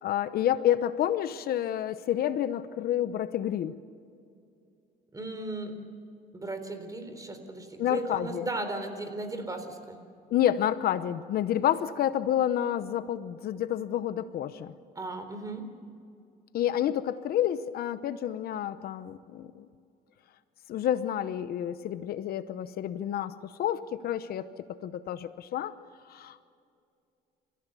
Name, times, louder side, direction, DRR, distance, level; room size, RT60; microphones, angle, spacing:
voice 1, 0.0-3.8 7.8-8.5 10.3-14.7 16.5-19.7 20.7-24.5 24.8-25.7 26.1-26.5, left 11 dB, 65° left, 13 dB, 0.9 m, -29 dB
voice 2, 5.1-5.8 6.3-10.0 14.9-15.7, right 2 dB, 20° right, 7 dB, 3.9 m, -36 dB
29.5 x 15.5 x 7.0 m, 2.4 s
cardioid pair, 110°, 17 cm